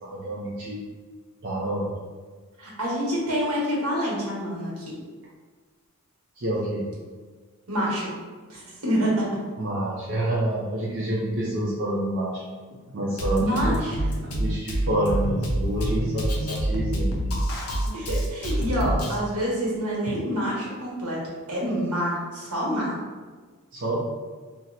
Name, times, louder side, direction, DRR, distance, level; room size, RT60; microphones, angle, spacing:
voice 1, 0.0-0.8 1.4-1.9 6.4-6.9 9.6-12.4 12.9-13.8 14.4-17.3 23.7-24.0, right 1 dB, 50° right, -6 dB, 0.5 m, -28 dB
voice 2, 2.6-5.0 7.7-8.1 8.5-9.3 13.3-14.1 17.9-22.9, equal, 85° right, -5 dB, 1.2 m, -27 dB
Drum kit, 13.2-19.2, equal, 85° left, 0.6 m, -27 dB
2.8 x 2.1 x 3.8 m, 1.5 s
head